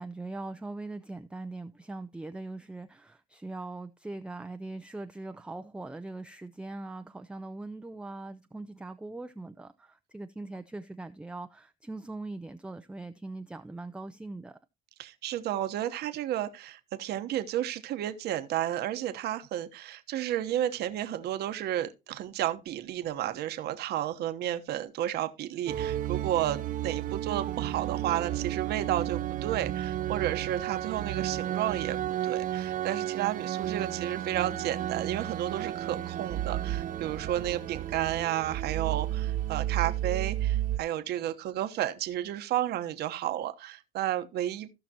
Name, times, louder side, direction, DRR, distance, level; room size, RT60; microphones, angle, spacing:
voice 1, 0.0-14.6, right 2 dB, 5° right, 0.5 m, -41 dB
voice 2, 15.0-32.0 32.2-44.7, right 12 dB, 75° right, 1.1 m, -32 dB
sound 1, 25.7-40.8, right 12 dB, 50° right, 0.7 m, -32 dB
16.0 x 5.9 x 2.8 m
cardioid pair, 110°, 17 cm